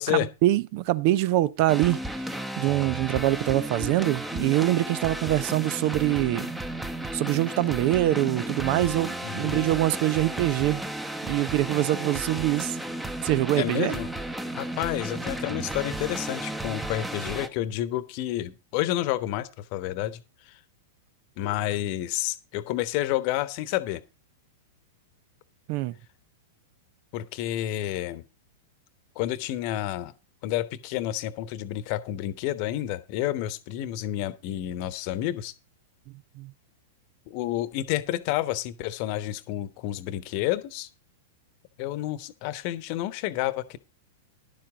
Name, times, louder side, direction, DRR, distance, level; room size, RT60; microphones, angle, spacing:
voice 1, 0.1-2.0 2.6-6.5 7.1-10.8 11.3-12.8 13.2-14.0 25.7-26.0 36.4-36.5, right 15 dB, 50° right, 0.6 m, -24 dB
sound 1, 1.7-17.5, right 1 dB, 5° right, 1.0 m, -33 dB
voice 2, 9.2-9.7 13.5-14.1 14.5-20.6 21.4-24.0 27.1-28.2 29.1-30.1 30.4-35.5 37.3-40.9 41.8-43.8, left 14 dB, 50° left, 1.1 m, -30 dB
11.5 x 7.6 x 5.0 m
hypercardioid pair, 105°, 0 cm